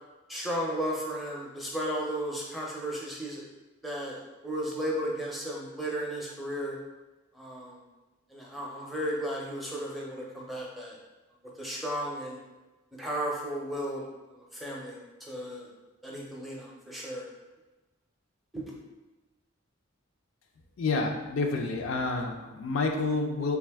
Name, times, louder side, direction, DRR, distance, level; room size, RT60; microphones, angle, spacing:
voice 1, 0.3-3.4 3.8-6.8 7.3-7.8 8.3-11.0 11.6-12.4 13.0-14.0 14.5-15.7 16.0-17.2 18.5-18.7, equal, ahead, -4 dB, 0.5 m, -34 dB
voice 2, 20.8-23.6, left 3 dB, 70° left, 3 dB, 0.4 m, -29 dB
3.4 x 2.4 x 3.4 m, 1.2 s
head